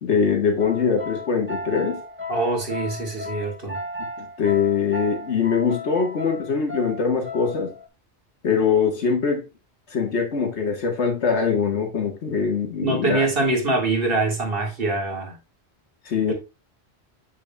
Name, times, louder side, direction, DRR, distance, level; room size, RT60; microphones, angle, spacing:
voice 1, 0.0-2.0 4.2-7.7 8.4-9.4 9.9-13.3 16.1-16.3, left 6 dB, 85° left, 1.7 m, -22 dB
sound 1, 0.6-7.9, left 2 dB, 10° right, 1.2 m, -35 dB
voice 2, 2.3-3.8 12.8-15.4 16.3-16.4, right 2 dB, 55° right, 2.1 m, -24 dB
7.2 x 6.2 x 2.2 m
omnidirectional pair, 1.1 m